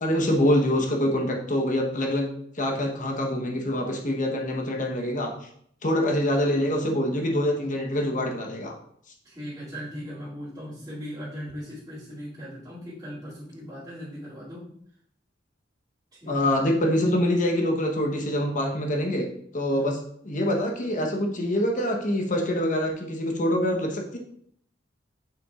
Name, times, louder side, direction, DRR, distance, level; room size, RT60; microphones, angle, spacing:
voice 1, 0.0-5.4 5.8-8.8 16.3-19.3 19.5-20.0 20.2-24.2, left 1 dB, 45° left, 2 dB, 1.0 m, -25 dB
voice 2, 9.2-14.7 16.1-16.5 19.7-19.9, equal, 20° right, -15 dB, 2.5 m, -38 dB
6.9 x 5.9 x 2.4 m, 0.67 s
head